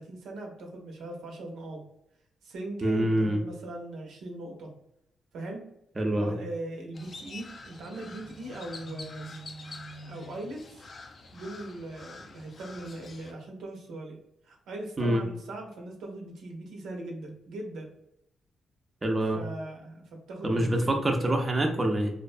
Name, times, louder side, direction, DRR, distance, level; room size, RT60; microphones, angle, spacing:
voice 1, 0.0-1.8 2.4-4.7 5.3-5.7 6.1-9.4 10.0-10.9 11.3-14.2 14.4-17.9 19.3-21.0, right 1 dB, 85° right, 1 dB, 0.6 m, -40 dB
voice 2, 2.8-3.4 6.0-6.4 15.0-15.2 19.0-19.4 20.4-22.1, right 1 dB, 25° right, 2 dB, 0.4 m, -25 dB
Crow, 6.9-13.3, left 2 dB, 45° left, 0.3 m, -45 dB
2.4 x 2.1 x 2.4 m, 0.80 s
cardioid pair, 85°, 0 cm